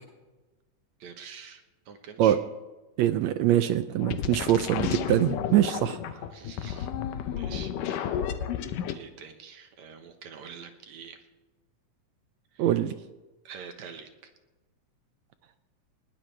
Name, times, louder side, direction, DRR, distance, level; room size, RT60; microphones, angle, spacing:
voice 1, 1.0-2.4 6.3-6.9 7.3-8.2 8.9-11.2 12.5-12.8 13.4-14.3, right 6 dB, 65° right, 6 dB, 2.3 m, -46 dB
voice 2, 3.0-6.2 12.6-12.9, right 12 dB, 80° right, 10 dB, 1.6 m, -24 dB
sound 1, 4.0-9.0, left 9 dB, 80° left, 2.5 m, -32 dB
20.5 x 18.0 x 3.3 m, 1.2 s
omnidirectional pair, 3.8 m